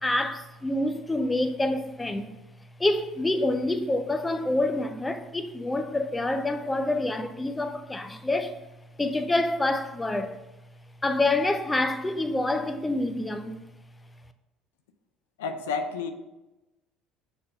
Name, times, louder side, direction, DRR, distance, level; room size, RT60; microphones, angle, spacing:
voice 1, 0.0-2.3 2.8-8.6 9.0-10.3 11.0-13.6, left 2 dB, 15° left, 0.6 m, -27 dB
voice 2, 15.4-16.1, left 5 dB, 90° left, 0.5 m, -30 dB
6.8 x 3.7 x 5.4 m
hypercardioid pair, 75°, 0 cm